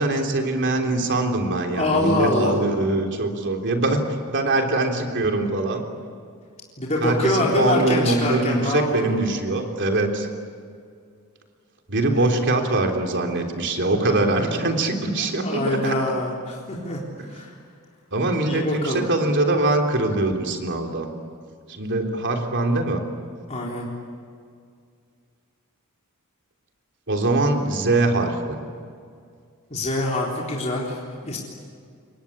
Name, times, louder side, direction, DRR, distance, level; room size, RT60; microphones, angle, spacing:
voice 1, 0.0-4.0 4.3-5.8 7.0-10.3 11.9-15.9 18.1-21.1 21.7-23.0 27.1-28.6, right 2 dB, 55° right, 3 dB, 3.5 m, -23 dB
voice 2, 1.7-2.6 6.8-9.2 12.1-12.4 15.3-17.0 17.3-17.5 18.5-19.1 23.5-23.9 29.7-31.4, left 1 dB, 30° left, -3 dB, 3.8 m, -24 dB
28.5 x 23.5 x 8.6 m, 2.2 s
head